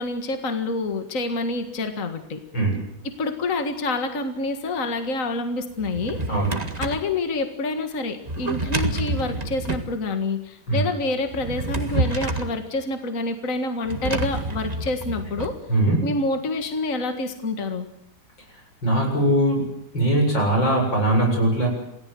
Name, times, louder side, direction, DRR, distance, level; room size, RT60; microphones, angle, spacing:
voice 1, 0.0-2.4 3.2-6.2 6.8-15.6 16.0-17.9, left 2 dB, 45° left, 6 dB, 2.2 m, -27 dB
Drawer open or close, 5.8-7.1 8.3-9.9 11.2-12.6 13.9-15.5, right 2 dB, 20° right, 1.8 m, -28 dB
voice 2, 6.3-6.6 10.7-10.8 15.7-16.0 18.8-19.7 19.9-21.7, right 1 dB, 90° left, 2 dB, 8.2 m, -20 dB
28.0 x 18.0 x 7.8 m, 0.81 s
omnidirectional pair, 2.0 m